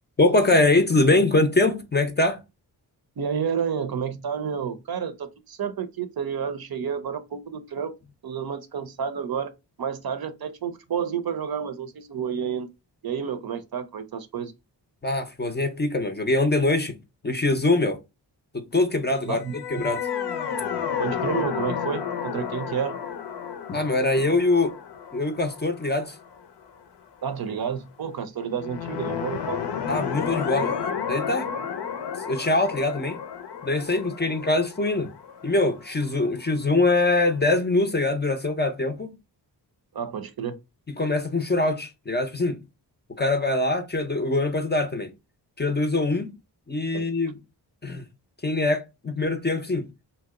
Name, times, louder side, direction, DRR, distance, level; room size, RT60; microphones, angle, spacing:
voice 1, 0.2-2.4 15.0-17.0 17.2-18.0 18.5-19.4 19.7-20.1 23.7-24.8 25.1-26.2 29.9-30.8 31.1-31.5 32.3-33.2 33.6-35.1 35.4-39.1 40.9-42.6 43.1-45.1 45.6-46.3 46.7-47.4 47.8-48.0 48.4-49.9, left 2 dB, 25° left, 0.5 m, -23 dB
voice 2, 3.2-7.9 8.2-9.5 9.8-12.7 13.0-14.5 19.3-19.9 21.0-23.0 27.2-29.6 39.9-40.6 46.9-47.1, right 7 dB, 55° right, 0.6 m, -30 dB
sound 1, 19.4-26.7 28.5-36.3, left 7 dB, 70° left, 0.6 m, -32 dB
2.8 x 2.0 x 3.5 m
cardioid pair, 60°, 43 cm